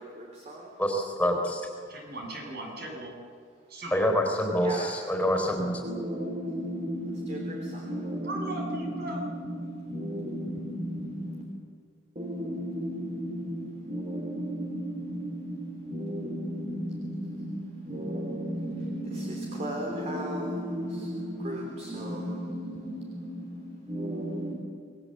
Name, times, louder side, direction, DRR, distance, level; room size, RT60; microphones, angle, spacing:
voice 1, 0.0-0.8 4.6-5.0 5.8-11.4 12.1-24.5, equal, 40° right, 3.4 m, -34 dB
voice 2, 0.8-1.7 3.9-5.8, equal, 10° left, 4.0 m, -26 dB
voice 3, 1.9-3.1 3.7-4.1 8.2-9.2, right 1 dB, 55° right, 7.5 m, -38 dB
27.5 x 20.5 x 7.8 m
head